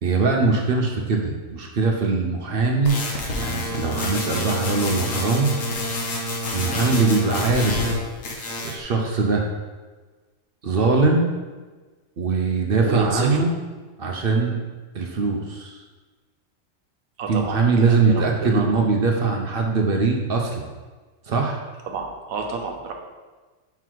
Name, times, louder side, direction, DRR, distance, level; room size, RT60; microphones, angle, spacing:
voice 1, 0.0-3.0 3.4-5.5 6.5-8.0 8.6-9.5 10.6-11.4 12.2-13.5 14.0-14.6 14.9-15.8 17.3-20.7 21.3-21.6, right 4 dB, 55° right, 1 dB, 0.7 m, -21 dB
sound 1, 2.9-8.0 8.2-8.8, left 2 dB, 70° left, 1.4 m, -28 dB
voice 2, 12.8-13.5 17.2-18.7 21.9-22.9, right 4 dB, 90° right, 2 dB, 1.2 m, -30 dB
5.8 x 3.9 x 4.5 m, 1.3 s
omnidirectional pair, 1.4 m